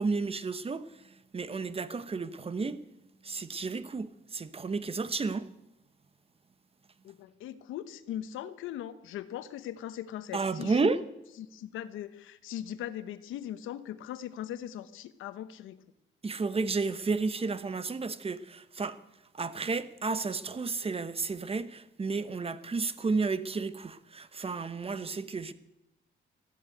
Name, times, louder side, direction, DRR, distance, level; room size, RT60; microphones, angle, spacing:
voice 1, 0.0-2.8 3.2-5.5 10.3-11.1 16.2-19.0 19.3-25.5, right 4 dB, 30° right, 1.1 m, -32 dB
voice 2, 7.0-10.9 11.4-15.8, left 11 dB, 85° left, 1.0 m, -40 dB
15.0 x 11.5 x 8.0 m
cardioid pair, 90°, 20 cm